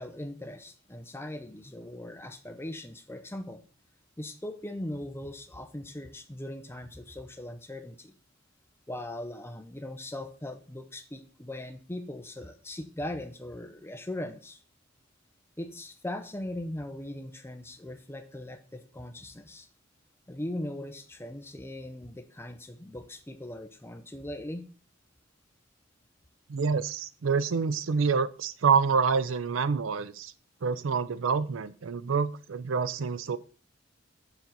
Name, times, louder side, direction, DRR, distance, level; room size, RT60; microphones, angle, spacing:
voice 1, 0.0-3.6 4.2-8.1 8.9-14.6 15.6-19.7 20.3-24.6, left 1 dB, 10° left, 7 dB, 0.6 m, -39 dB
voice 2, 26.5-30.3 30.6-33.4, right 5 dB, 75° right, 16 dB, 0.5 m, -27 dB
7.0 x 4.0 x 5.8 m, 0.41 s
head